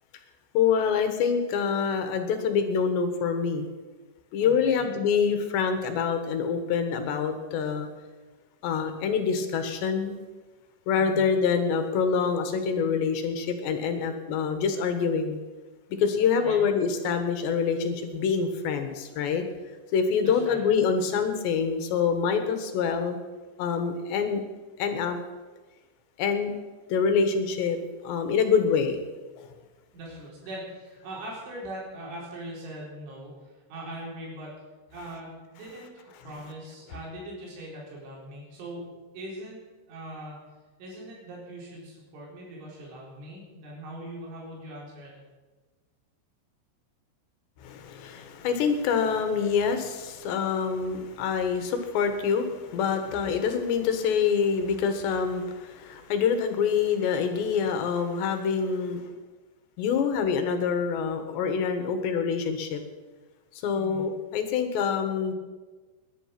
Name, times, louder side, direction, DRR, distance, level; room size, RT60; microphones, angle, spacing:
voice 1, 0.6-3.7 4.3-7.9 8.6-10.2 10.9-15.4 16.0-19.5 19.9-23.2 23.6-24.4 24.8-25.2 26.2-26.5 26.9-29.0 29.4-29.5 47.6-59.0 59.8-62.8 63.6-65.3, left 6 dB, 70° left, 7 dB, 3.4 m, -26 dB
voice 2, 4.4-4.9 10.9-11.3 16.4-16.6 20.2-20.6 29.9-34.6 34.9-38.9 39.1-39.6 39.9-40.4 40.8-45.2 63.7-64.1, right 1 dB, 80° right, -4 dB, 6.5 m, -41 dB
20.5 x 11.0 x 5.9 m, 1.3 s
omnidirectional pair, 5.4 m